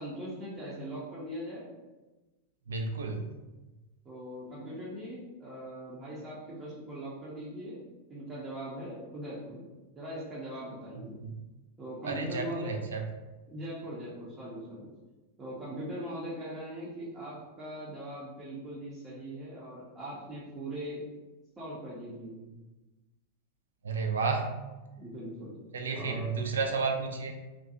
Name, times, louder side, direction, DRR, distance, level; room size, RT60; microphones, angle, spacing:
voice 1, 0.0-1.7 4.0-7.8 8.1-9.7 10.0-11.2 11.8-12.7 13.5-14.9 15.4-21.1 21.6-22.6 25.0-25.5 25.9-26.3, right 1 dB, 20° right, -8 dB, 0.7 m, -40 dB
voice 2, 2.7-3.2 11.2-11.4 12.0-13.0 23.8-24.6 25.7-27.4, right 4 dB, 65° right, 3 dB, 0.3 m, -32 dB
2.5 x 2.2 x 2.7 m, 1.1 s
figure-of-eight pair, 90°, 0 cm